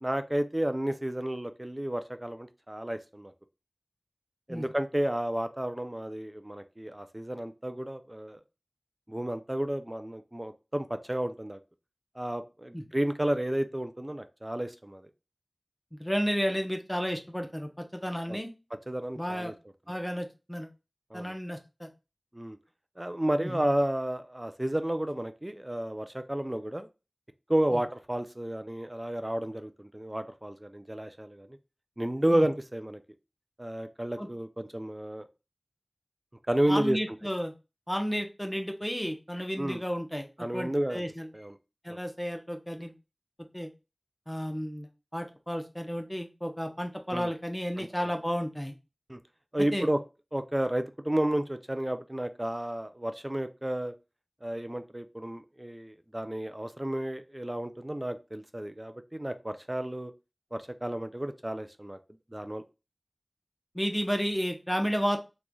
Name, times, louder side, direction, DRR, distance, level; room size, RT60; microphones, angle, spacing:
voice 1, 0.0-3.3 4.5-8.4 9.1-11.6 12.2-15.1 18.3-18.4 18.9-19.5 21.1-21.3 22.3-22.6 23.0-26.9 27.5-31.5 32.0-33.0 33.6-35.2 36.5-37.0 39.6-39.8 40.4-41.0 41.3-41.5 41.9-42.0 47.1-47.3 47.8-48.1 49.1-49.2 49.5-50.0 50.3-53.9 54.4-60.1 60.5-62.0 62.3-62.6, right 1 dB, 30° right, 9 dB, 0.4 m, -31 dB
voice 2, 16.0-18.5 19.1-19.5 19.9-20.7 21.1-21.9 23.4-23.6 27.7-27.8 32.3-32.5 34.2-34.3 36.7-37.5 37.9-40.3 40.5-41.3 41.8-42.9 43.5-43.7 44.3-48.7 49.7-49.9 63.7-65.2, equal, 10° left, 4 dB, 0.8 m, -32 dB
3.8 x 3.1 x 2.2 m, 0.28 s
wide cardioid pair, 40°, 0 cm